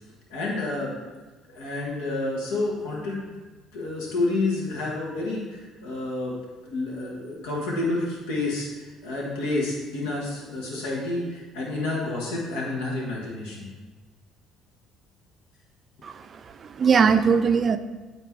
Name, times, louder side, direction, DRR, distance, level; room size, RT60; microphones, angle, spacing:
voice 1, 0.3-0.9 1.5-3.2 3.7-6.4 6.6-13.7, left 2 dB, 80° left, -4 dB, 1.4 m, -29 dB
voice 2, 16.0-17.8, right 6 dB, 45° right, 10 dB, 0.4 m, -21 dB
9.0 x 3.0 x 4.5 m, 1.3 s
hypercardioid pair, 60°, 0 cm